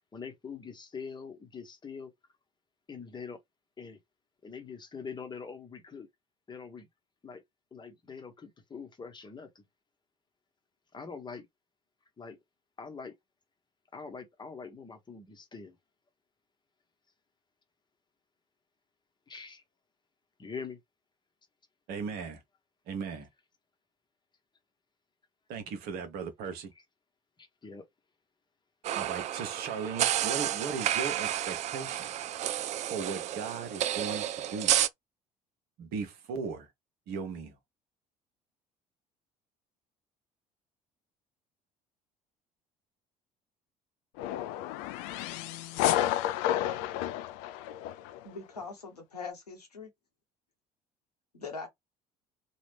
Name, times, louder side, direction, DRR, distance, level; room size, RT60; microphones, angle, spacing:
voice 1, 0.1-2.1 2.9-3.4 3.8-4.0 4.4-6.1 6.5-6.9 7.2-7.4 7.7-9.6 10.9-11.5 12.2-12.4 12.8-13.1 13.9-15.8 19.3-19.6 20.4-20.8 27.4-27.9, left 5 dB, 20° left, 1.0 m, -43 dB
voice 2, 21.9-22.4 22.9-23.3 25.5-26.7 28.9-32.1 32.9-34.7 35.8-36.7 37.1-37.6, right 5 dB, 55° right, 0.9 m, -37 dB
sound 1, 28.8-34.9, right 11 dB, 35° right, 0.4 m, -31 dB
sound 2, 44.2-48.2, left 12 dB, 55° left, 0.4 m, -31 dB
voice 3, 48.2-49.9 51.3-51.7, left 4 dB, 80° left, 1.0 m, -41 dB
3.0 x 2.4 x 3.2 m
figure-of-eight pair, 55°, 20 cm